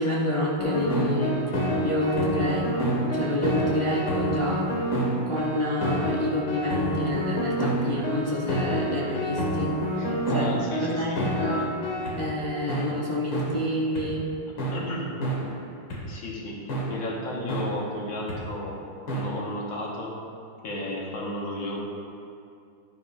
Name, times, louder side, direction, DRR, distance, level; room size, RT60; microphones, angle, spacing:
voice 1, 0.0-1.4 1.8-4.7 5.3-9.7 10.1-10.5 10.8-11.7 12.2-14.3, left 1 dB, 35° left, -5 dB, 0.4 m, -28 dB
sound 1, 0.6-12.1 12.7-12.8 13.3-13.5 14.0-14.1 14.6-14.7 15.2-15.4 15.9-16.0 16.7-16.8 17.5-17.6 18.3-18.4 19.1-19.2, right 1 dB, 70° left, 2.3 m, -27 dB
voice 2, 10.0-11.3 14.7-15.2 16.1-18.8 19.1-20.2 20.6-21.8, left 1 dB, 90° left, -3 dB, 2.2 m, -33 dB
11.0 x 9.8 x 2.5 m, 2.4 s
omnidirectional pair, 2.1 m